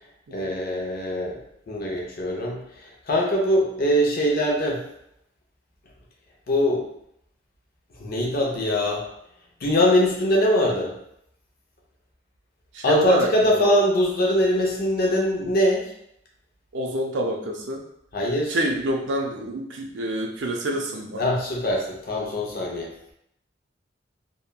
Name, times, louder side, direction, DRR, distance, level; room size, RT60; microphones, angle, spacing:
voice 1, 0.3-1.4 1.7-2.6 3.1-4.8 6.5-6.9 8.0-9.0 9.6-10.9 12.8-15.9 18.1-18.6 21.2-22.9, left 1 dB, 55° left, -1 dB, 0.6 m, -22 dB
voice 2, 12.7-13.6 16.7-17.8 18.5-21.2, right 1 dB, 75° right, 2 dB, 0.4 m, -26 dB
2.9 x 2.1 x 2.2 m, 0.76 s
head